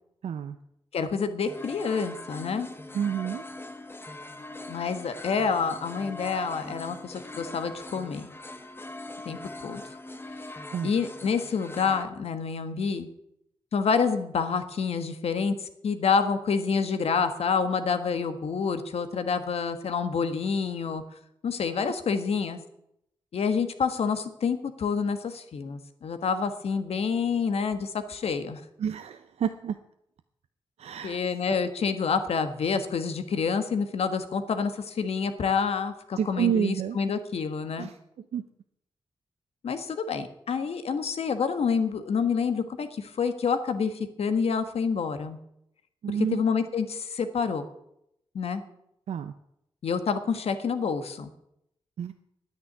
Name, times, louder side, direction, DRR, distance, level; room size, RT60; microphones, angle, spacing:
voice 1, 0.2-0.6 2.9-3.4 10.7-10.9 28.8-29.8 30.8-31.2 31.5-31.7 36.2-37.0 37.8-38.0 38.3-38.4 46.0-46.4 49.1-49.3 52.0-52.1, right 8 dB, 90° right, 9 dB, 0.6 m, -29 dB
voice 2, 0.9-2.7 4.7-8.3 9.2-9.4 9.6-9.8 10.8-13.1 13.7-15.5 15.8-21.0 21.4-22.6 23.3-28.6 31.0-37.9 39.6-45.4 46.1-47.6 48.3-48.6 49.8-51.3, left 5 dB, 75° left, 9 dB, 1.4 m, -28 dB
sound 1, 1.4-12.0, left 2 dB, 20° left, 1.1 m, -42 dB
10.5 x 9.7 x 9.5 m, 0.79 s
wide cardioid pair, 105°, 10 cm